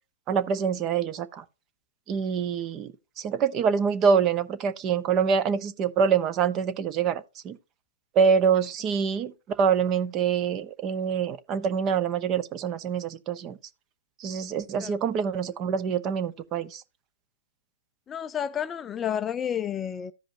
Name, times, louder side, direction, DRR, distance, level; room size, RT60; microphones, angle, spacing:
voice 1, 0.3-1.4 2.1-2.9 3.2-7.6 8.1-9.3 9.6-13.6 14.2-16.8, right 6 dB, 30° right, 0.8 m, -25 dB
voice 2, 18.1-20.1, left 9 dB, 20° left, 0.4 m, -30 dB
15.0 x 5.1 x 2.7 m
hypercardioid pair, 130°, 0 cm